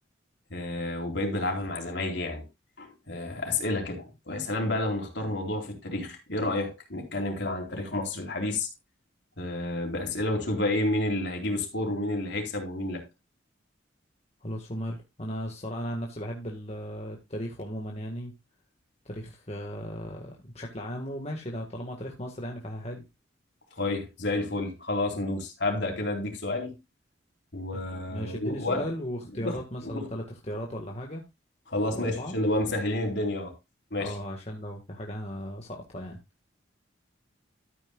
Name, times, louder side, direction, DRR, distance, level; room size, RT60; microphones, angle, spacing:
voice 1, 0.5-2.5 2.8-8.7 9.4-13.0 23.8-26.8 27.5-28.9 29.4-30.1 31.7-33.5 33.9-34.1, left 2 dB, 60° left, 4.0 m, -30 dB
voice 2, 14.4-18.3 19.0-23.0 27.7-31.2 31.8-32.4 34.0-36.2, equal, 35° left, 1.7 m, -36 dB
13.0 x 9.9 x 2.4 m
head